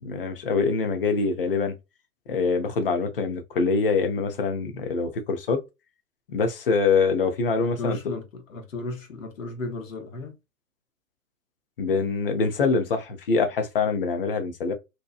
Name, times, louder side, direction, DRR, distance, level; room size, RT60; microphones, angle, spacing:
voice 1, 0.0-1.7 2.3-5.6 6.3-8.1 11.8-14.7, left 4 dB, 40° left, 0.6 m, -24 dB
voice 2, 7.6-10.4, left 2 dB, 60° left, 0.9 m, -35 dB
2.8 x 2.2 x 2.4 m
figure-of-eight pair, 125°, 45 cm